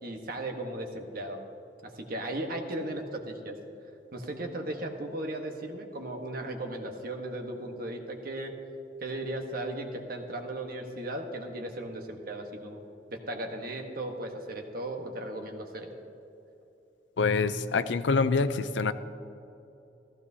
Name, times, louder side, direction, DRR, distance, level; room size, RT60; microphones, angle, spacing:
voice 1, 0.0-1.4 1.8-3.6 4.1-8.5 9.0-12.8 13.1-15.9, right 1 dB, 55° right, 3 dB, 1.2 m, -36 dB
voice 2, 17.2-18.9, left 4 dB, 85° left, 13 dB, 0.5 m, -26 dB
15.0 x 14.5 x 2.8 m, 2.9 s
head